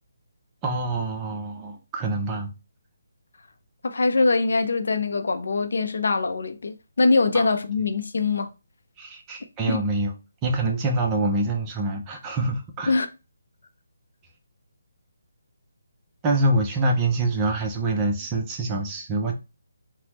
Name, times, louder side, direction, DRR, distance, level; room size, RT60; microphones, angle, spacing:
voice 1, 0.6-2.5 7.3-7.5 9.0-10.1 10.4-13.0 16.2-19.3, right 2 dB, 15° right, 0.5 m, -25 dB
voice 2, 3.8-8.5 9.7-9.9 12.9-13.1, left 3 dB, 70° left, 0.5 m, -23 dB
3.3 x 2.1 x 2.9 m
hypercardioid pair, 170°, 0 cm